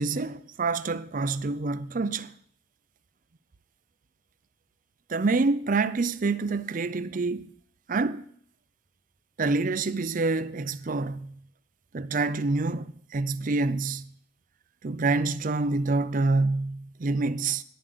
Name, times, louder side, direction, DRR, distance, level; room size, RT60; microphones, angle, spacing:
voice 1, 0.0-2.3 5.1-7.5 7.9-8.2 9.4-11.4 11.9-12.9 13.1-14.1 14.8-17.6, right 3 dB, 40° right, 0.5 m, -27 dB
10.5 x 7.4 x 7.8 m
head